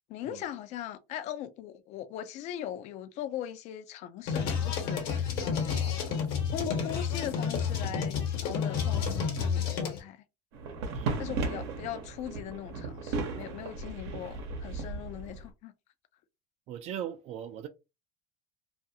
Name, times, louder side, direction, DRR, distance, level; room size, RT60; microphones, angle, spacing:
voice 1, 0.1-6.2 6.5-10.2 11.2-15.7, left 11 dB, 55° left, 0.4 m, -40 dB
sound 1, 4.3-10.0, left 6 dB, 70° left, 1.1 m, -30 dB
sound 2, 10.5-15.5, right 3 dB, 85° right, 0.8 m, -36 dB
voice 2, 10.9-11.2 16.7-17.7, right 10 dB, 50° right, 0.4 m, -39 dB
2.4 x 2.3 x 2.7 m
supercardioid pair, 105°, 14 cm